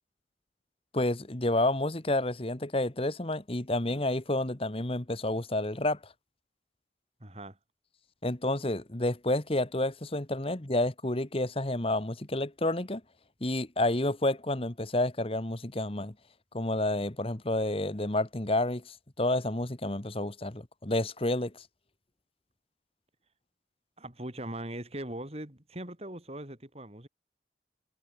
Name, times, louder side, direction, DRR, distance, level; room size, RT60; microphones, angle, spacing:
voice 1, 0.9-6.1 8.2-13.0 13.4-16.1 16.5-21.7, left 1 dB, 30° left, 1.5 m, -30 dB
voice 2, 7.2-7.6 24.0-27.1, right 1 dB, 35° right, 4.1 m, -40 dB
head